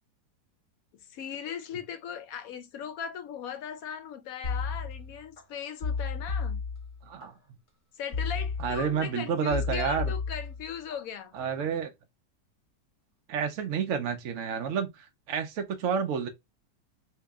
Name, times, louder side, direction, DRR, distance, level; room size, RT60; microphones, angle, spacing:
voice 1, 1.1-6.6 8.0-11.3, left 8 dB, 70° left, 0.9 m, -38 dB
sound 1, 4.4-5.4 5.8-7.3 8.1-9.1 9.5-11.0 11.4-11.7, left 5 dB, 40° left, 0.9 m, -33 dB
voice 2, 7.0-7.3 8.6-10.1 11.3-11.9 13.3-16.3, right 7 dB, 65° right, 0.7 m, -30 dB
2.9 x 2.8 x 3.4 m
omnidirectional pair, 1.8 m